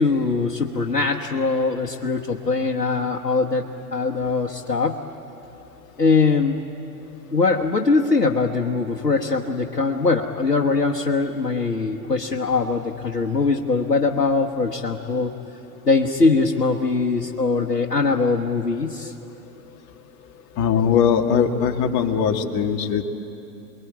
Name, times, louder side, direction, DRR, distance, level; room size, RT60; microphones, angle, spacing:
voice 1, 0.0-5.0 6.0-6.6 7.3-15.3 15.8-19.1, left 4 dB, 85° left, 0 dB, 1.4 m, -22 dB
voice 2, 20.6-23.0, left 7 dB, 35° left, 4 dB, 2.1 m, -20 dB
29.0 x 21.5 x 9.3 m, 2.9 s
figure-of-eight pair, 95°, 47 cm